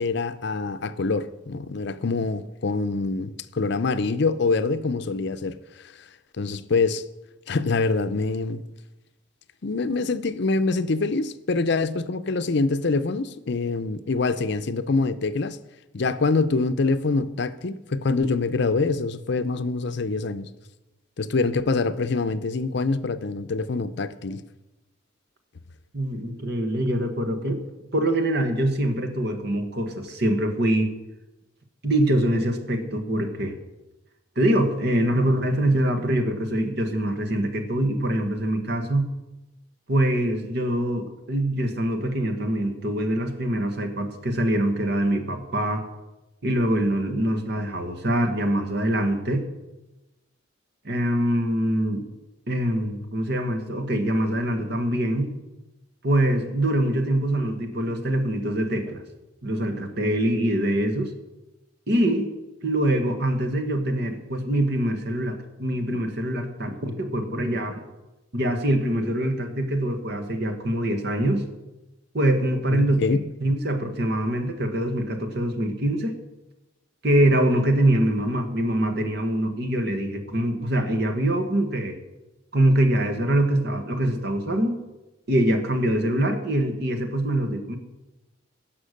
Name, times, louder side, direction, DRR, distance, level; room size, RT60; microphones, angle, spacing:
voice 1, 0.0-5.8 6.4-7.0 7.5-8.6 9.6-15.6 15.9-20.5 21.2-24.4 72.7-73.2, left 3 dB, 60° left, 0.6 m, -25 dB
voice 2, 25.9-27.6 27.9-30.9 31.8-33.5 34.3-39.1 39.9-45.9 46.4-49.4 50.8-52.0 52.5-55.3 56.0-59.0 59.4-61.1 61.9-62.3 62.6-67.8 68.3-71.4 72.1-76.2 77.0-82.0 82.5-84.8 85.3-87.8, right 1 dB, 55° right, 1.5 m, -24 dB
16.5 x 6.0 x 6.5 m
head